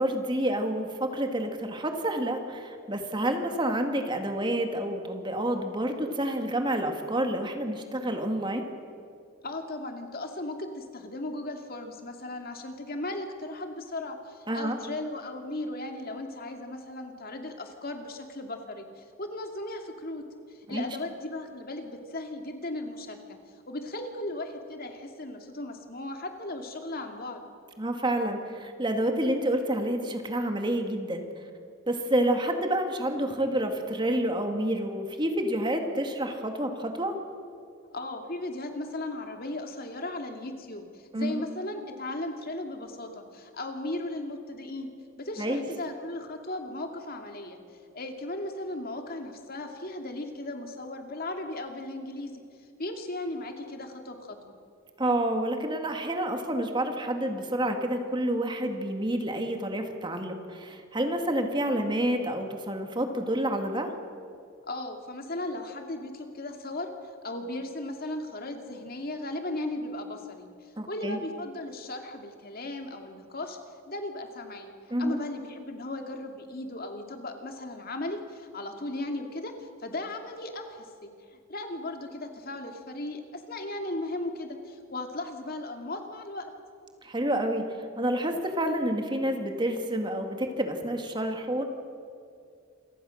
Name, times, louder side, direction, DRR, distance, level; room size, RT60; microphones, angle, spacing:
voice 1, 0.0-8.7 14.5-14.8 20.7-20.8 27.8-31.4 31.9-37.2 41.1-41.4 45.4-45.6 55.0-63.9 70.8-71.2 74.9-75.2 87.0-91.6, right 1 dB, 20° right, 4 dB, 2.1 m, -29 dB
voice 2, 9.4-23.4 23.7-27.4 37.9-44.9 45.2-47.6 47.9-52.3 52.8-54.5 64.6-66.9 67.2-73.6 73.9-74.7 75.0-86.5, left 2 dB, 45° left, 4 dB, 2.4 m, -36 dB
28.0 x 24.0 x 6.5 m, 2.3 s
head